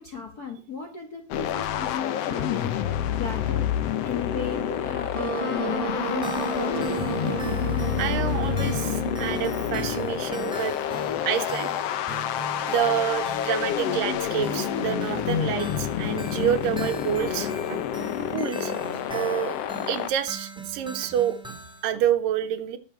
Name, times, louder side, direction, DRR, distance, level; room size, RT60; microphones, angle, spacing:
voice 1, 0.0-2.8 3.2-3.7 4.0-7.0, left 6 dB, 50° left, 4 dB, 1.1 m, -35 dB
sound 1, 1.3-20.1, left 10 dB, 70° left, 1.5 m, -28 dB
Wind instrument woodwind instrument, 5.1-10.2, right 2 dB, 15° left, 3.3 m, -31 dB
sound 2, 6.0-21.9, right 3 dB, ahead, 1.5 m, -41 dB
voice 2, 8.0-10.8 11.3-11.7 12.7-17.8 18.2-19.6 19.9-22.8, right 10 dB, 85° right, 9 dB, 2.9 m, -28 dB
18.5 x 7.1 x 4.5 m, 0.33 s
omnidirectional pair, 3.9 m